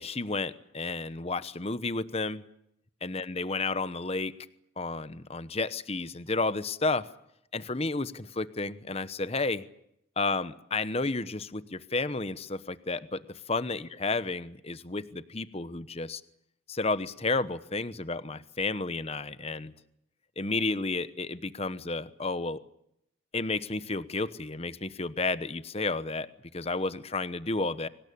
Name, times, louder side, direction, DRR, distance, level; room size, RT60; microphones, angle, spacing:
voice 1, 0.0-2.4 3.0-4.3 4.8-7.0 7.5-9.6 10.2-16.2 16.7-19.7 20.4-22.6 23.3-26.3 26.5-27.9, left 3 dB, 30° left, 14 dB, 1.0 m, -31 dB
24.0 x 19.5 x 8.7 m, 0.77 s
head